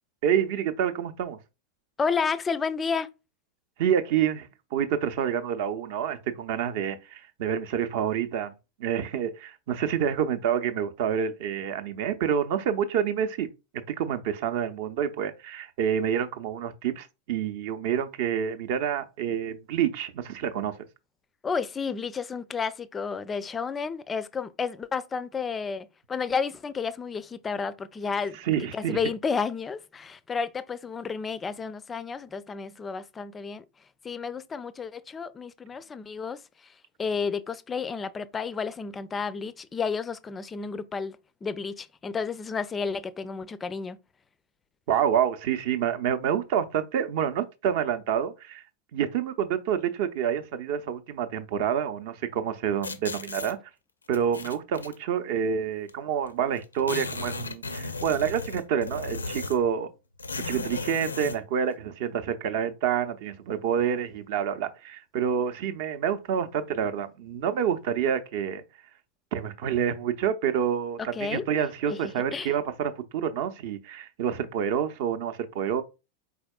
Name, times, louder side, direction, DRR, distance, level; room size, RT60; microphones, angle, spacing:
voice 1, 0.2-1.4 3.8-8.5 8.8-13.5 13.9-20.8 28.4-29.0 44.9-48.6 48.9-53.6 54.1-59.9 60.4-68.6 69.3-75.8, right 8 dB, 50° right, 0.5 m, -28 dB
voice 2, 2.0-3.1 21.4-28.4 28.7-33.6 34.0-36.4 37.0-44.0 71.1-71.5 71.9-72.5, left 5 dB, 20° left, 0.4 m, -31 dB
sound 1, 52.8-53.5 54.1-54.9 55.9-56.0 56.2-56.3 56.6-59.7 60.2-61.4, left 3 dB, 75° left, 0.4 m, -35 dB
4.6 x 4.2 x 2.2 m
figure-of-eight pair, 90°, 0 cm